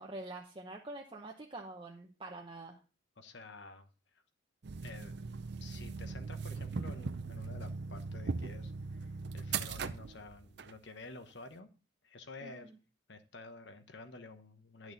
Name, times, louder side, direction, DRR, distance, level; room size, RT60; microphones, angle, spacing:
voice 1, 0.0-2.8 12.4-12.8, right 2 dB, 25° right, 0 dB, 0.8 m, -46 dB
voice 2, 3.2-3.9 4.1-4.2 4.8-5.1 5.6-11.7 12.0-12.7 13.1-14.9, left 3 dB, 60° left, 9 dB, 1.0 m, -51 dB
sound 1, 4.6-10.7, right 4 dB, 55° right, 0.5 m, -39 dB
10.5 x 6.3 x 3.9 m, 0.35 s
head